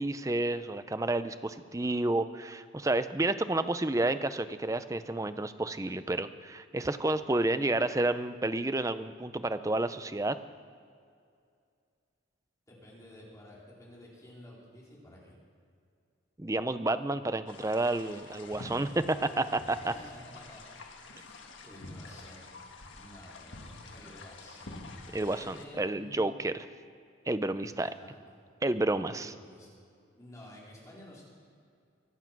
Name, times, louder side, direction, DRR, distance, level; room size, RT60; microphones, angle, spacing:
voice 1, 0.0-10.4 16.4-19.9 25.1-26.5 27.3-27.9 28.6-29.3, right 2 dB, 15° right, 12 dB, 0.5 m, -30 dB
voice 2, 12.7-15.4 19.2-19.4 19.8-22.7 22.9-25.3 25.5-26.4 27.6-28.3 29.2-29.7 30.1-31.3, left 1 dB, 15° left, -6 dB, 4.3 m, -52 dB
sound 1, 17.5-25.6, left 2 dB, 75° left, 1.6 m, -47 dB
24.0 x 8.3 x 6.0 m, 2.3 s
head